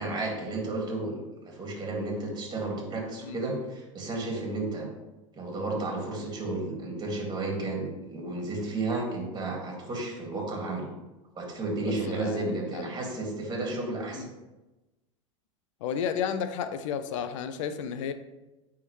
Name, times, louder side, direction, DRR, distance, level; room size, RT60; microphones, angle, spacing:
voice 1, 0.0-4.9 5.4-10.9 11.4-14.3, right 2 dB, 25° right, 0 dB, 2.1 m, -32 dB
voice 2, 11.9-12.9 14.1-14.3 15.8-18.1, left 7 dB, 70° left, 11 dB, 0.6 m, -32 dB
9.6 x 3.6 x 3.1 m, 1.0 s
hypercardioid pair, 90°, 17 cm